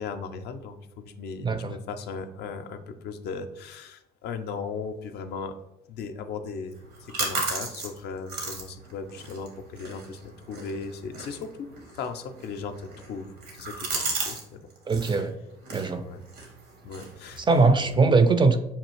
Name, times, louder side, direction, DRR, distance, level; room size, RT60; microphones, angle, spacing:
voice 1, 0.0-5.6 5.9-6.7 7.0-11.7 12.0-12.8 13.1-13.3 13.5-14.6 16.0-16.2 16.8-17.4 17.8-18.0, left 5 dB, 55° left, 8 dB, 0.4 m, -37 dB
voice 2, 1.4-1.7 14.9-15.3 15.7-16.0 17.4-18.6, right 3 dB, 25° right, 9 dB, 0.4 m, -21 dB
sound 1, 6.7-14.4 14.7-15.2 15.6-17.9, right 3 dB, 80° right, 1.0 m, -36 dB
5.4 x 2.4 x 3.0 m, 0.86 s
hypercardioid pair, 55°, 21 cm